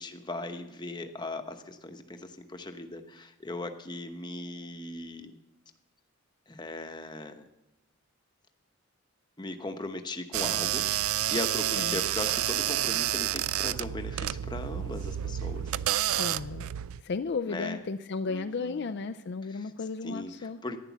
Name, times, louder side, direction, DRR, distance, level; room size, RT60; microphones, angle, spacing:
voice 1, 0.0-5.4 6.5-7.5 9.4-10.9 11.3-15.7 17.5-17.8 18.3-18.9 19.5-19.7 20.0-20.8, left 2 dB, 20° left, 7 dB, 0.9 m, -38 dB
sound 1, 10.3-17.0, right 12 dB, 80° right, 0.4 m, -30 dB
voice 2, 16.1-16.7 17.0-20.6, left 4 dB, 50° left, 10 dB, 0.4 m, -34 dB
11.0 x 10.5 x 7.1 m, 0.94 s
head